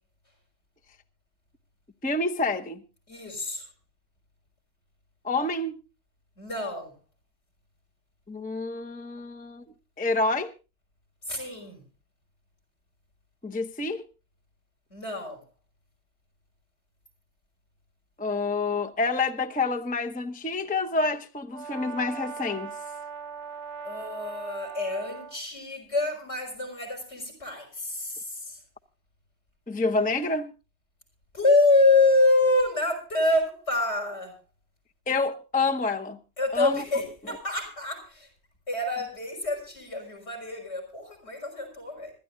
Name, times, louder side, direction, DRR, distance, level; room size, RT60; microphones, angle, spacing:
voice 1, 2.0-2.8 5.2-5.8 8.3-9.6 10.0-10.5 13.4-14.0 18.2-22.7 29.7-30.5 35.1-36.2 36.5-36.8, left 3 dB, 10° left, 0.7 m, -28 dB
voice 2, 3.1-3.7 6.4-6.9 11.3-11.8 14.9-15.4 23.8-28.6 31.3-34.3 36.4-38.3 38.7-42.1, left 2 dB, 70° left, 5.9 m, -26 dB
Brass instrument, 21.5-25.4, right 6 dB, 75° right, 1.3 m, -39 dB
25.5 x 13.0 x 2.6 m
omnidirectional pair, 1.2 m